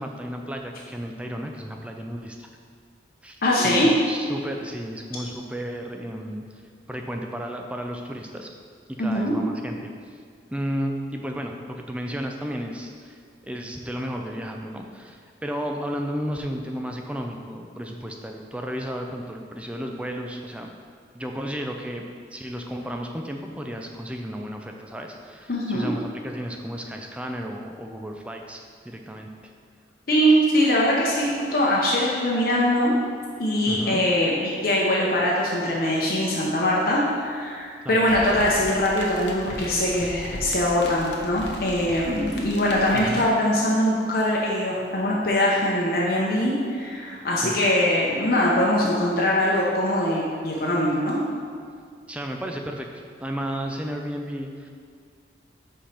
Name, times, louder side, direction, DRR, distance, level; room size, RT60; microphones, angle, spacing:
voice 1, 0.0-2.5 3.2-6.4 6.9-8.5 8.9-9.9 10.5-13.2 13.5-20.7 21.1-22.0 22.3-29.3 33.7-34.0 37.8-38.1 42.9-43.3 47.4-47.6 52.1-52.9 53.2-54.7, equal, 5° right, 2 dB, 0.4 m, -33 dB
voice 2, 3.4-3.9 9.0-9.3 25.5-25.9 30.1-33.0 33.4-51.2, left 1 dB, 55° left, -4 dB, 0.8 m, -22 dB
sound 1, 38.1-43.1, left 1 dB, 80° left, 0.9 m, -37 dB
5.1 x 4.3 x 5.7 m, 2.1 s
head